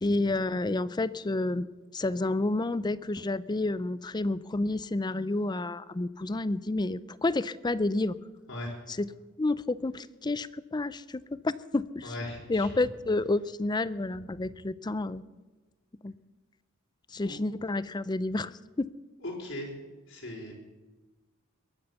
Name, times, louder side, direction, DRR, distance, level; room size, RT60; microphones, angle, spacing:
voice 1, 0.0-1.7 1.9-8.1 9.0-9.1 9.4-12.1 12.5-15.2 16.0-16.1 17.1-18.9, left 2 dB, 20° left, 17 dB, 0.4 m, -30 dB
voice 2, 12.0-12.8 17.2-17.4 19.2-19.7 20.1-20.5, left 1 dB, 65° left, -3 dB, 4.5 m, -38 dB
22.0 x 8.7 x 7.0 m, 1.2 s
head